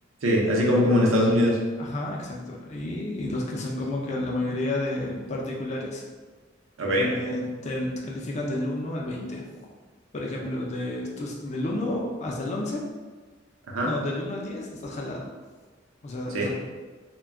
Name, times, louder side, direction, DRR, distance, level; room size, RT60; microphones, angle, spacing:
voice 1, 0.2-1.6 6.8-7.1 13.7-13.9 16.3-16.5, equal, 85° right, -3 dB, 0.6 m, -21 dB
voice 2, 1.8-6.0 7.0-9.5 10.1-12.8 13.8-15.3 16.0-16.5, left 1 dB, 35° left, -2 dB, 0.4 m, -31 dB
2.2 x 2.1 x 3.5 m, 1.4 s
head